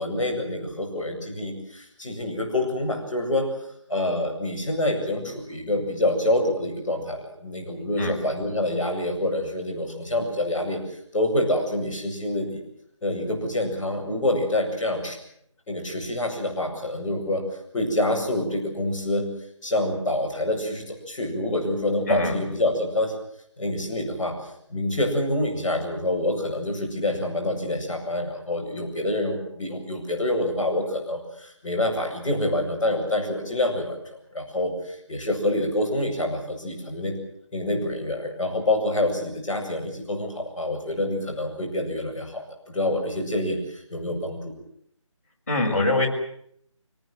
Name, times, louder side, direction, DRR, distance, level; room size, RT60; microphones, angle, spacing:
voice 1, 0.0-3.5 3.9-12.6 13.0-15.2 15.7-17.4 17.7-19.3 19.6-23.1 23.6-24.4 24.7-34.0 34.3-37.2 37.5-44.5, left 1 dB, 5° left, -12 dB, 6.1 m, -26 dB
voice 2, 45.5-46.1, left 2 dB, 30° left, -3 dB, 6.1 m, -23 dB
26.5 x 19.5 x 7.8 m, 0.70 s
figure-of-eight pair, 175°, 17 cm